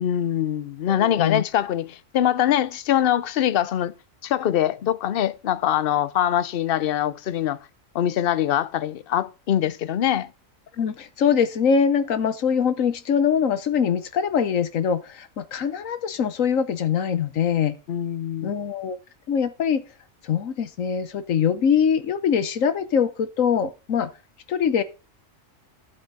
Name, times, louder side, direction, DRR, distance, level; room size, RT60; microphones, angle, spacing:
voice 1, 0.0-3.9 4.2-7.6 7.9-10.3 17.9-18.5, left 11 dB, 55° left, 0.7 m, -23 dB
voice 2, 0.9-1.4 10.8-17.8 18.4-19.0 19.3-19.8 20.2-24.1 24.5-24.8, left 7 dB, 75° left, 1.4 m, -23 dB
11.5 x 8.1 x 4.1 m
omnidirectional pair, 1.4 m